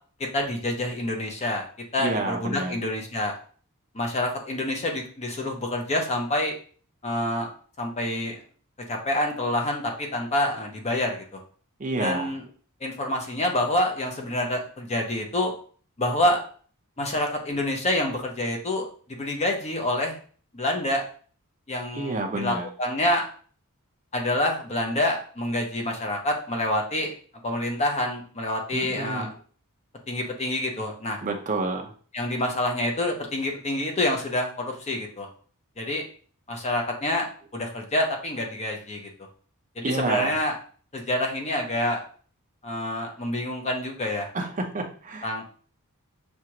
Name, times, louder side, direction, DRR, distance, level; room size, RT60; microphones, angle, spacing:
voice 1, 0.3-1.6 1.9-3.3 3.9-6.5 7.0-7.5 7.8-8.4 8.9-11.4 12.0-12.4 12.8-15.5 16.0-16.4 17.0-20.2 20.5-21.0 21.7-23.2 24.1-27.1 27.4-29.3 30.1-31.2 32.1-35.3 35.8-36.0 36.5-39.1 39.8-40.5 40.9-42.0 42.6-44.3 45.2-45.5, left 1 dB, 30° left, 2 dB, 0.7 m, -27 dB
voice 2, 2.0-2.7 11.8-12.3 21.9-22.7 28.7-29.3 31.2-31.9 39.8-40.4 44.3-45.5, right 2 dB, 35° right, 2 dB, 0.7 m, -29 dB
6.2 x 2.4 x 2.9 m, 0.43 s
head